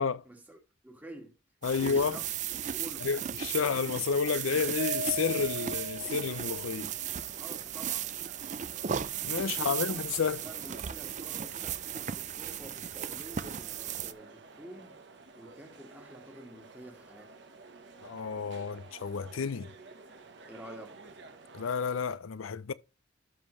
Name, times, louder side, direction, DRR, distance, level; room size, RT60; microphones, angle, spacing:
voice 1, 0.0-1.4 1.8-2.3 2.6-3.1 7.4-8.1 9.5-10.0 10.4-15.0 15.3-17.3 20.5-21.1, right 1 dB, 10° right, 1.6 m, -49 dB
voice 2, 1.6-2.2 3.0-6.9 9.2-10.4 18.0-19.7 21.5-22.7, left 6 dB, 85° left, 0.5 m, -31 dB
sound 1, 1.6-14.1, right 9 dB, 35° right, 0.4 m, -36 dB
Mallet percussion, 4.8-7.0, equal, 90° right, 2.5 m, -38 dB
sound 2, 6.3-22.2, right 3 dB, 60° right, 1.1 m, -52 dB
12.5 x 5.3 x 3.2 m
head